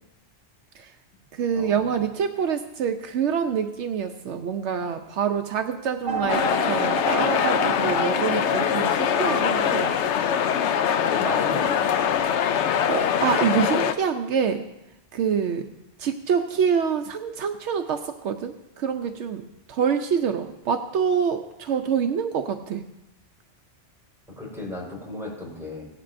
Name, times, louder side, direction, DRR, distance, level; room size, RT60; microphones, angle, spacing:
voice 1, 1.3-10.0 12.5-14.7 15.1-15.6 16.0-22.8, right 7 dB, 75° right, 7 dB, 0.9 m, -26 dB
sound 1, 6.1-11.6, right 4 dB, 25° right, 0.7 m, -33 dB
sound 2, 6.3-13.9, left 8 dB, 75° left, 0.9 m, -23 dB
voice 2, 11.1-11.9 24.4-25.9, left 1 dB, ahead, -5 dB, 4.4 m, -35 dB
17.0 x 11.0 x 2.5 m, 0.94 s
omnidirectional pair, 1.2 m